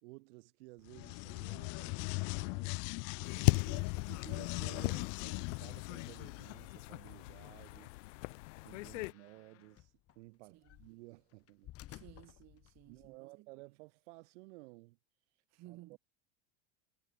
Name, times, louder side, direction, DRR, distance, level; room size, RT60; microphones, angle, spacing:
voice 1, 0.0-2.8 3.2-7.9 8.6-11.7 12.9-15.0 15.7-16.0, right 24 dB, 70° right, 2.7 m, -55 dB
sound 1, 0.9-6.6, left 33 dB, 55° left, 1.4 m, -39 dB
sound 2, 3.2-9.1, left 22 dB, 80° left, 0.7 m, -38 dB
sound 3, 4.4-13.2, left 15 dB, 40° left, 3.2 m, -60 dB
voice 2, 11.9-13.5 15.5-16.0, right 18 dB, 45° right, 3.7 m, -57 dB
supercardioid pair, 140°, 36 cm